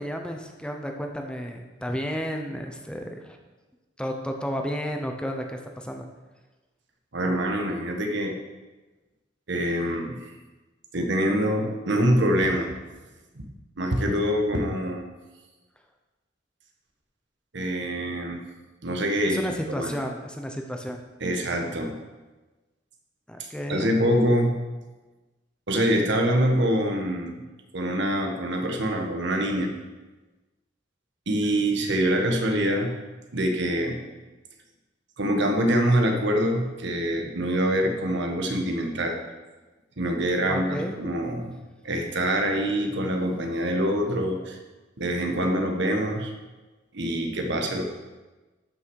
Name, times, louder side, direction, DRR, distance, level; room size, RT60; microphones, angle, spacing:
voice 1, 0.0-3.4 4.0-6.1 19.3-21.0 23.3-23.9 40.5-41.0, equal, 5° left, 3 dB, 0.8 m, -32 dB
voice 2, 7.1-8.3 9.5-10.1 10.9-12.7 13.3-13.5 13.8-15.0 17.5-18.4 18.8-19.4 19.8-19.9 21.2-21.9 23.7-24.5 25.7-27.4 27.7-29.7 31.3-32.9 33.3-34.0 35.2-39.2 40.0-41.5 41.8-44.6 45.0-46.3 46.9-47.8, equal, 65° right, 3 dB, 1.4 m, -25 dB
12.5 x 6.1 x 4.8 m, 1.2 s
head